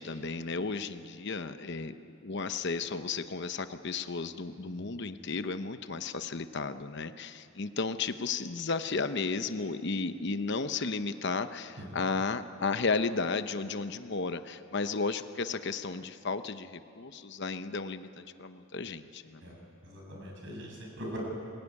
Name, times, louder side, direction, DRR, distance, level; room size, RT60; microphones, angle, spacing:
voice 1, 0.0-19.4, left 4 dB, 55° left, 10 dB, 0.8 m, -34 dB
voice 2, 19.8-21.2, equal, 60° right, -1 dB, 7.0 m, -42 dB
21.0 x 20.5 x 9.8 m, 2.5 s
head